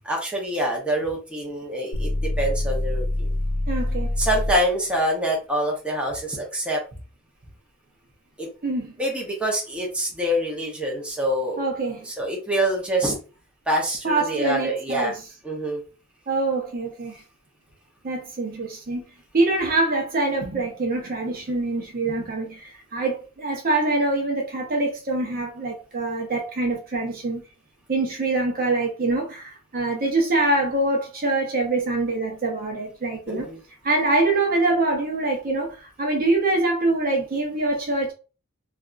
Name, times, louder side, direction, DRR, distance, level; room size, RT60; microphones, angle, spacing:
voice 1, 0.0-2.1 2.4-3.3 4.2-6.8 8.4-8.5 9.0-11.7 12.1-13.2 13.7-15.1 15.4-15.8 33.3-33.6, equal, 5° right, 0.8 m, -25 dB
sound 1, 1.9-4.7, left 1 dB, 85° left, 0.7 m, -25 dB
voice 2, 3.7-4.1 8.6-8.9 11.6-12.0 14.0-15.2 16.3-17.2 18.0-19.0 19.3-27.4 27.9-33.5 33.8-38.1, right 2 dB, 45° right, 0.8 m, -24 dB
3.3 x 2.4 x 2.4 m
head